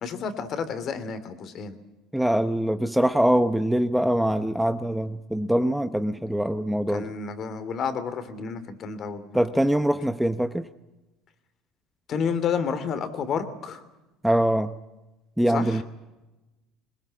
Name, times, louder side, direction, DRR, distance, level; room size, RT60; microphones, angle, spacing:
voice 1, 0.0-1.8 6.9-9.4 12.1-13.8 15.5-15.8, left 6 dB, 45° left, 11 dB, 2.8 m, -30 dB
voice 2, 2.1-7.1 9.3-10.7 14.2-14.7 15.4-15.8, right 1 dB, ahead, 10 dB, 0.8 m, -23 dB
22.0 x 20.5 x 8.7 m, 1.0 s
supercardioid pair, 115°, 0 cm